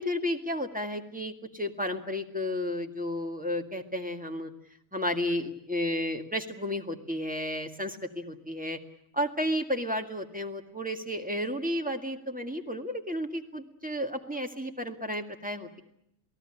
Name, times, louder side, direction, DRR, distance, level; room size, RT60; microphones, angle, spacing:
voice 1, 0.0-4.5 4.9-8.8 9.1-15.8, left 1 dB, 5° right, 4 dB, 1.7 m, -32 dB
28.5 x 18.0 x 10.0 m, 0.77 s
omnidirectional pair, 2.4 m